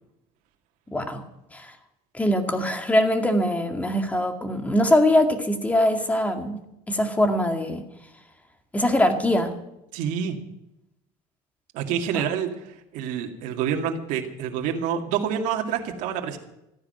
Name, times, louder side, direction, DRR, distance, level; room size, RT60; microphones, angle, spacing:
voice 1, 0.9-1.2 1.5-1.7 2.1-6.6 6.9-7.8 8.7-9.5 12.1-12.2, left 1 dB, 10° left, 6 dB, 2.1 m, -22 dB
voice 2, 9.9-10.4 11.7-16.4, right 8 dB, 70° right, 3 dB, 2.2 m, -27 dB
14.5 x 10.0 x 7.8 m, 0.86 s
cardioid pair, 125°, 13 cm